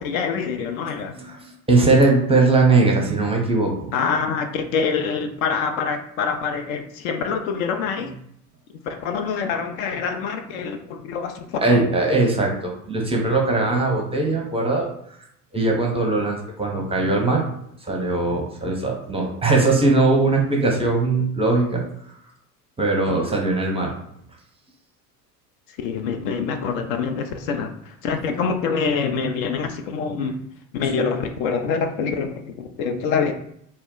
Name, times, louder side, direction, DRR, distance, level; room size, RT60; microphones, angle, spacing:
voice 1, 0.0-1.1 3.9-8.1 8.9-11.8 25.8-30.4 30.7-33.3, left 5 dB, 60° left, 6 dB, 0.5 m, -25 dB
voice 2, 1.7-3.9 11.6-14.9 15.5-17.4 17.9-21.8 22.8-23.9, right 3 dB, 15° right, 0 dB, 0.6 m, -20 dB
2.2 x 2.1 x 3.6 m, 0.70 s
hypercardioid pair, 75°, 47 cm